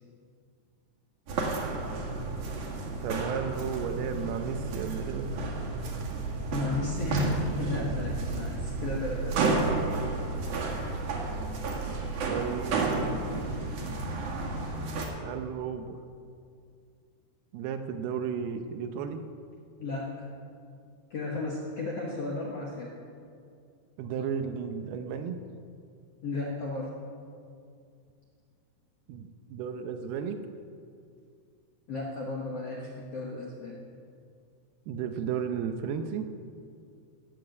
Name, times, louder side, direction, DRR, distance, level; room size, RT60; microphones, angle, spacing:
sound 1, 1.3-15.1, right 3 dB, 55° right, 2.9 m, -31 dB
voice 1, 3.0-5.3 12.3-13.0 15.1-16.0 17.5-19.2 24.0-25.4 29.1-30.4 34.9-36.3, right 7 dB, 80° right, 7 dB, 2.6 m, -33 dB
voice 2, 6.5-9.6 19.8-20.3 21.1-22.9 26.2-26.9 31.9-33.8, left 3 dB, 60° left, -2 dB, 1.6 m, -34 dB
18.0 x 7.6 x 7.9 m, 2.3 s
omnidirectional pair, 4.7 m